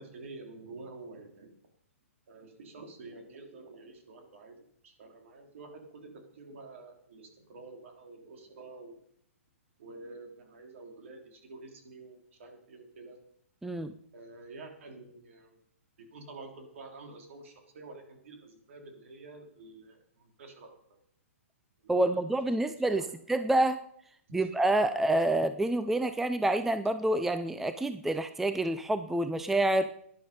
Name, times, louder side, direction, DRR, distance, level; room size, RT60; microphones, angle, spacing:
voice 1, 0.0-1.5 2.3-4.6 4.8-9.0 9.8-13.2 14.1-15.6 16.0-20.8 21.8-22.2 22.6-23.1 24.3-24.5, right 3 dB, 65° right, 3 dB, 3.5 m, -49 dB
voice 2, 13.6-13.9 21.9-23.0 23.3-23.8 24.3-29.9, right 1 dB, 5° right, 10 dB, 0.4 m, -27 dB
13.0 x 10.5 x 5.3 m, 0.69 s
hypercardioid pair, 135°, 8 cm